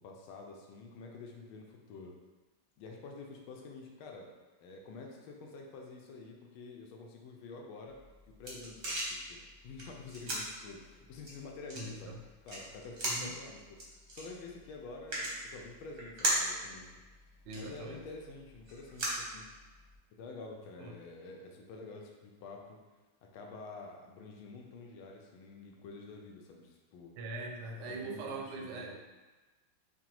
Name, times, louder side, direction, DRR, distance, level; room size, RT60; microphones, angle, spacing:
voice 1, 0.0-2.2 2.8-4.3 4.6-12.2 12.5-17.0 17.5-19.5 20.2-22.8 23.3-27.1 27.8-28.9, left 3 dB, 85° left, 1 dB, 1.4 m, -48 dB
sound 1, 7.9-20.0, right 1 dB, 50° right, 0.8 m, -39 dB
voice 2, 11.8-12.2 13.1-13.3 17.4-18.1 20.8-20.9 27.2-29.0, right 3 dB, 75° right, 1 dB, 1.1 m, -42 dB
5.0 x 2.2 x 2.9 m, 1.2 s
omnidirectional pair, 2.2 m